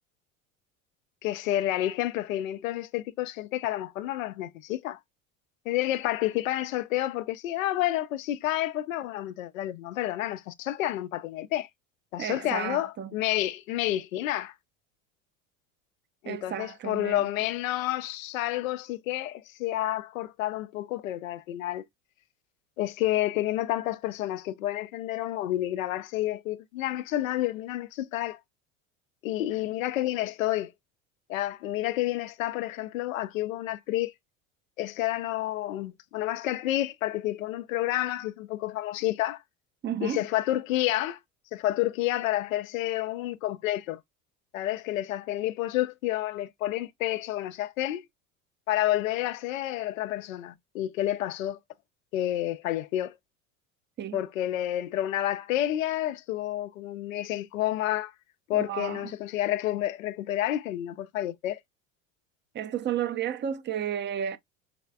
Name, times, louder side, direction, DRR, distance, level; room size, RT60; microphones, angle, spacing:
voice 1, 1.2-5.0 5.7-11.7 12.1-14.5 16.2-21.8 22.8-28.4 29.2-30.7 31.3-34.1 34.8-39.4 40.0-41.2 41.5-44.0 44.5-48.0 48.7-51.6 52.1-53.1 54.1-58.1 58.5-61.6, left 14 dB, 80° left, 0.6 m, -29 dB
voice 2, 12.2-13.2 16.2-17.3 39.8-40.3 54.0-54.2 58.5-59.2 62.5-64.4, right 9 dB, 30° right, 0.6 m, -32 dB
5.0 x 3.2 x 2.2 m
hypercardioid pair, 75°, 39 cm